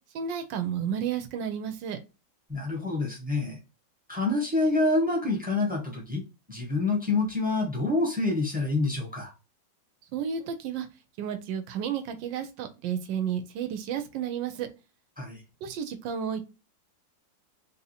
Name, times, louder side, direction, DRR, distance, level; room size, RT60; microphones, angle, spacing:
voice 1, 0.1-2.0 10.1-10.9 11.2-14.7 15.6-16.4, right 8 dB, 75° right, 7 dB, 1.2 m, -32 dB
voice 2, 2.5-3.6 4.1-6.2 6.5-9.3 15.2-15.4, left 2 dB, 10° right, -1 dB, 0.5 m, -27 dB
3.5 x 2.7 x 2.7 m, 0.29 s
omnidirectional pair, 2.1 m